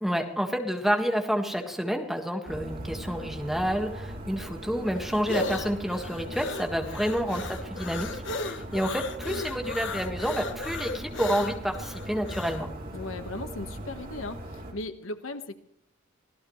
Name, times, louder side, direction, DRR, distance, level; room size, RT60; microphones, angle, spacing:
voice 1, 0.0-12.7, equal, ahead, 3 dB, 1.8 m, -29 dB
sound 1, 2.4-14.7, right 1 dB, 45° right, 3.1 m, -39 dB
sound 2, 4.6-12.6, left 3 dB, 60° left, 1.2 m, -36 dB
voice 2, 7.0-7.4 12.9-15.6, left 2 dB, 80° left, 7 dB, 1.5 m, -38 dB
25.0 x 17.0 x 3.2 m, 0.69 s
head